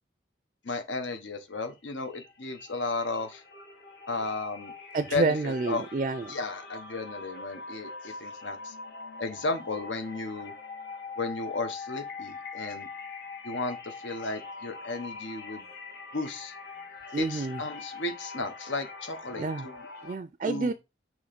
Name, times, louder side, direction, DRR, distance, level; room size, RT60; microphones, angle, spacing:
voice 1, 0.6-3.4 4.1-4.7 5.1-5.8 6.3-8.7 9.2-10.5 11.2-12.9 13.4-15.6 16.1-16.5 17.2-19.9 20.4-20.7, left 3 dB, 80° left, 1.1 m, -34 dB
sound 1, 1.5-1.8 2.1-20.2, left 4 dB, 60° left, 1.4 m, -43 dB
voice 2, 4.9-6.3 17.1-17.6 19.3-19.7 20.0-20.7, right 3 dB, 40° right, 0.3 m, -29 dB
6.3 x 3.0 x 5.1 m
head